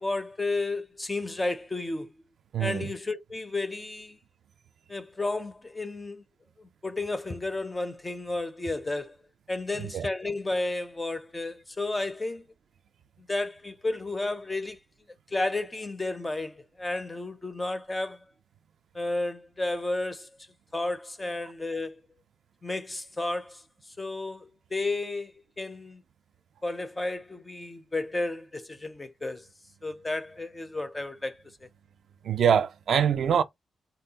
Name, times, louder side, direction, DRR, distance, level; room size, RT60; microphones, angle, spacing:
voice 1, 0.0-2.1 2.6-4.2 4.9-6.2 6.6-9.2 9.5-12.4 13.2-14.8 15.3-18.2 18.9-20.3 20.7-22.0 22.6-23.6 24.0-26.0 26.6-29.4 29.8-31.4, left 2 dB, 15° left, 0.4 m, -32 dB
voice 2, 2.5-2.9 9.9-10.1 32.2-33.4, right 8 dB, 65° right, 0.4 m, -24 dB
3.7 x 2.2 x 2.7 m
wide cardioid pair, 135°, 0 cm